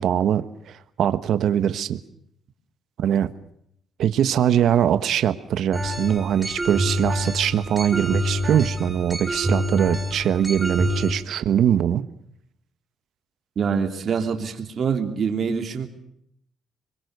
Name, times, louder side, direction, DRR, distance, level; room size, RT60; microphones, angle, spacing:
voice 1, 0.0-2.0 3.0-3.3 4.0-12.1, right 10 dB, 70° right, 12 dB, 1.3 m, -22 dB
sound 1, 5.7-11.1, equal, 10° right, 7.8 m, -27 dB
voice 2, 13.5-15.9, right 6 dB, 50° right, 5 dB, 3.2 m, -25 dB
25.5 x 22.5 x 6.8 m, 0.73 s
cardioid pair, 100°, 0 cm